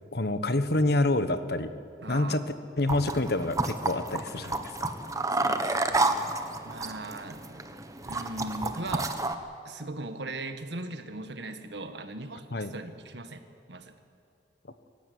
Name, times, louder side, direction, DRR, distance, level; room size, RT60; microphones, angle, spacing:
voice 1, 0.1-1.7 2.1-2.4 2.8-4.5 4.8-4.9 12.5-12.7, left 2 dB, 65° left, 10 dB, 1.3 m, -27 dB
voice 2, 2.0-2.4 5.3-6.1 6.6-9.2 9.7-13.4 13.7-13.9, right 2 dB, 80° right, 8 dB, 1.7 m, -39 dB
sound 1, 2.9-9.3, right 2 dB, 20° right, 1.2 m, -30 dB
24.5 x 15.5 x 9.5 m, 2.4 s
head